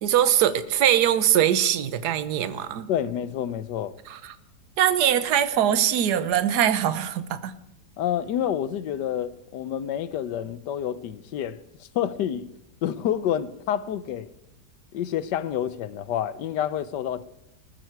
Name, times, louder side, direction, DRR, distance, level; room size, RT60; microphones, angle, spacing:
voice 1, 0.0-2.9 4.1-4.2 4.8-7.5, right 10 dB, 65° right, 1.4 m, -22 dB
voice 2, 2.9-4.0 8.0-12.5 12.8-14.3 14.9-17.2, left 10 dB, 75° left, 1.3 m, -28 dB
19.5 x 14.0 x 4.6 m
omnidirectional pair, 1.9 m